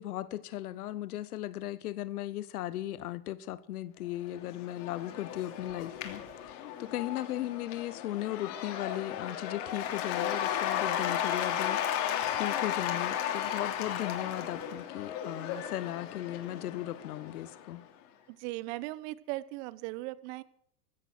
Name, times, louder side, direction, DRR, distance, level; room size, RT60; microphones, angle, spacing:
voice 1, 0.0-17.8, left 14 dB, 75° left, 1.2 m, -37 dB
Cheering / Applause / Crowd, 4.3-17.7, left 10 dB, 55° left, 3.2 m, -34 dB
voice 2, 18.3-20.4, right 19 dB, 50° right, 1.1 m, -38 dB
15.5 x 13.0 x 6.1 m
hypercardioid pair, 110°, 45 cm